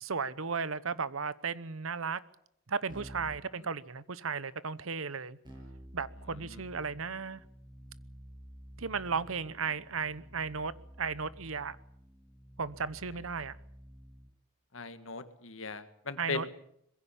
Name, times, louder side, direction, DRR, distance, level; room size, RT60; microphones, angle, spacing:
voice 1, 0.0-2.2 2.7-5.4 5.9-7.4 8.8-10.7 11.0-11.8 12.6-13.6 16.2-16.5, right 5 dB, 85° right, 17 dB, 1.0 m, -35 dB
Keyboard (musical), 2.9-3.5 5.4-14.3, equal, 20° right, 7.9 m, -51 dB
voice 2, 14.7-16.5, left 4 dB, 80° left, 10 dB, 1.9 m, -38 dB
22.0 x 15.5 x 8.5 m, 0.73 s
head